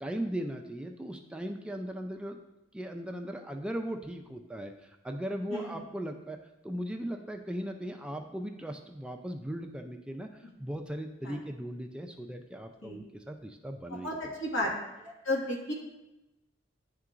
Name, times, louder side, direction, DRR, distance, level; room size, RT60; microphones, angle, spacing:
voice 1, 0.0-2.4 2.7-6.4 6.6-14.3, right 1 dB, 5° right, 4 dB, 0.3 m, -38 dB
voice 2, 14.0-14.7 15.0-15.7, left 1 dB, 80° left, -3 dB, 1.7 m, -33 dB
10.5 x 3.7 x 2.4 m, 0.97 s
head